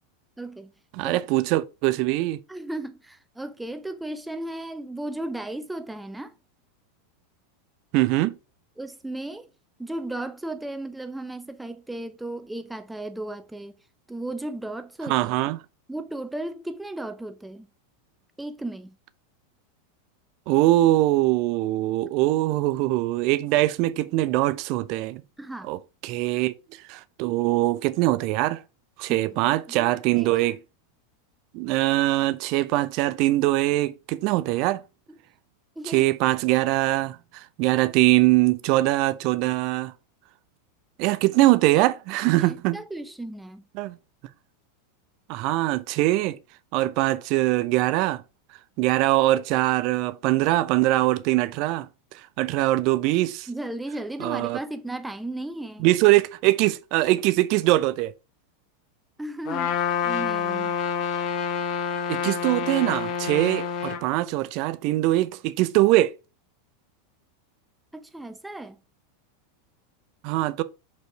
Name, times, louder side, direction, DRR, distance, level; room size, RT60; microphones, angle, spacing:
voice 1, 0.4-0.7 1.0-1.2 2.5-6.3 8.8-9.5 9.8-13.8 14.1-15.4 15.9-17.7 18.4-19.0 25.4-25.7 29.1-29.4 29.7-30.5 35.8-36.1 42.2-43.6 53.5-55.9 59.2-60.8 67.9-68.8, right 1 dB, 5° right, 0.8 m, -35 dB
voice 2, 0.9-2.4 7.9-8.4 15.1-15.6 20.5-25.2 25.6-26.5 26.9-28.6 29.0-30.6 31.5-34.8 35.8-39.9 41.0-42.8 43.7-44.0 45.3-46.4 46.7-48.2 48.8-51.9 52.4-53.5 54.2-54.6 55.8-58.1 62.1-66.1 70.2-70.6, right 17 dB, 45° right, 0.6 m, -22 dB
Trumpet, 59.5-64.0, left 7 dB, 40° left, 1.0 m, -27 dB
5.3 x 4.4 x 4.7 m
figure-of-eight pair, 85°, 0 cm